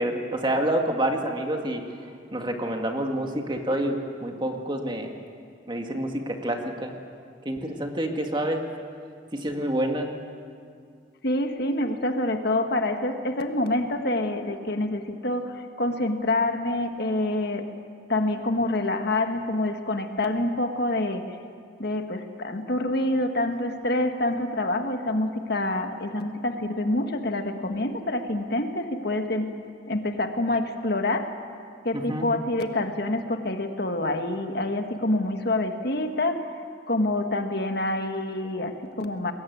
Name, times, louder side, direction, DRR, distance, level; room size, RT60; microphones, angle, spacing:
voice 1, 0.0-1.8 2.3-5.1 5.7-6.9 7.5-8.6 9.3-10.1 31.9-32.3, right 1 dB, 25° right, 3 dB, 2.0 m, -27 dB
voice 2, 11.2-17.6 18.1-21.2 21.8-29.5 29.9-31.3 31.8-36.5 36.9-39.3, left 1 dB, 55° left, 5 dB, 1.6 m, -26 dB
23.5 x 21.0 x 9.5 m, 2.2 s
head